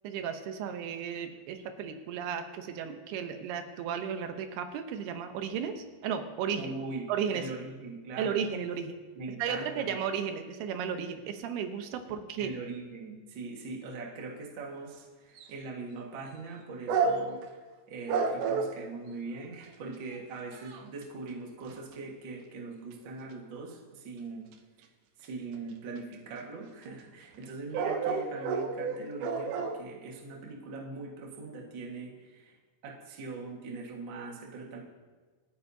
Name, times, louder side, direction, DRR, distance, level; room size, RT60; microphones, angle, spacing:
voice 1, 0.0-6.7 7.1-7.5 8.2-9.0 9.4-12.5, right 7 dB, 90° right, 7 dB, 3.0 m, -34 dB
voice 2, 6.6-8.4 9.2-10.0 12.4-24.5 25.2-32.6 32.8-34.8, right 3 dB, 45° right, -1 dB, 1.7 m, -41 dB
sound 1, 15.4-15.5 16.9-17.4 18.1-18.7 19.7-19.8 20.2-20.3 20.5-21.0 21.7-21.9 25.5-25.6 26.0-26.1 27.4-27.5 27.7-29.8, right 5 dB, 75° right, 2.0 m, -30 dB
27.0 x 9.8 x 2.8 m, 1.3 s
omnidirectional pair, 4.4 m